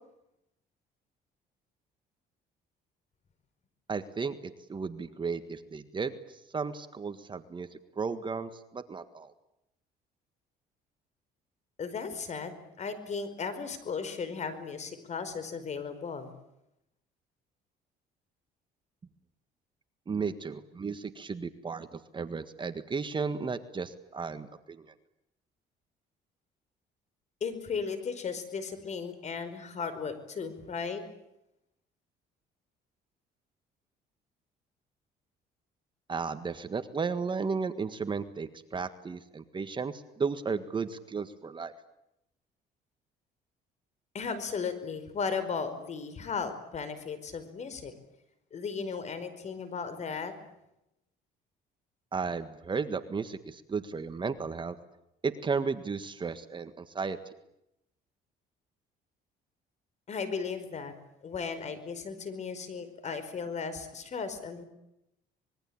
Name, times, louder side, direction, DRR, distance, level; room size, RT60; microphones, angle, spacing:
voice 1, 3.9-4.4 4.7-9.3 20.1-24.9 36.1-41.7 52.1-54.8 55.2-57.2, right 5 dB, 30° right, 10 dB, 1.7 m, -34 dB
voice 2, 11.8-16.3 27.4-31.0 44.1-47.9 48.5-50.3 60.1-60.9 61.2-64.6, left 5 dB, 45° left, 12 dB, 5.0 m, -36 dB
25.5 x 22.0 x 8.9 m, 0.84 s
cardioid pair, 110°, 17 cm